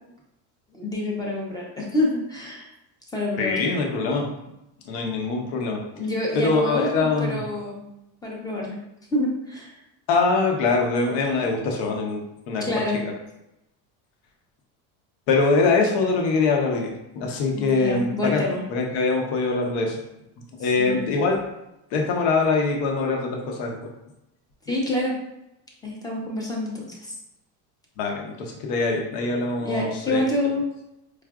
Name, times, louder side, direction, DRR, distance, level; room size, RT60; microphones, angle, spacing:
voice 1, 0.7-2.7 3.1-3.7 5.9-7.9 8.2-8.8 9.1-9.8 12.6-13.0 17.5-18.6 20.8-21.1 24.7-25.1 25.8-27.1 29.6-30.7, left 1 dB, 10° left, -2 dB, 0.6 m, -27 dB
voice 2, 3.4-4.3 4.9-5.8 6.3-7.4 10.1-12.2 12.5-12.6 13.0-13.1 15.3-18.4 18.7-20.0 20.6-21.5 21.9-23.8 28.0-30.2, left 3 dB, 60° left, 1 dB, 0.8 m, -23 dB
4.7 x 2.4 x 2.4 m, 0.89 s
cardioid pair, 145°, 45 cm